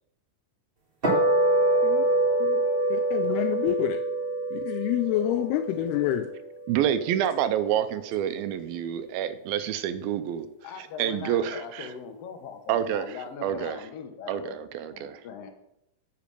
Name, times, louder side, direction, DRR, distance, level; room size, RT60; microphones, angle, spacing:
sound 1, 1.0-7.5, right 2 dB, 30° right, 0.9 m, -26 dB
voice 1, 1.8-2.6 2.9-4.0 4.5-6.3, left 13 dB, 90° left, 6 dB, 2.6 m, -28 dB
voice 2, 6.7-10.5 10.8-11.9 12.7-13.8 14.3-15.2, right 10 dB, 80° right, 12 dB, 2.4 m, -28 dB
voice 3, 10.6-14.6 14.9-15.5, left 6 dB, 75° left, 5 dB, 1.4 m, -40 dB
8.3 x 5.9 x 6.7 m, 0.82 s
omnidirectional pair, 4.5 m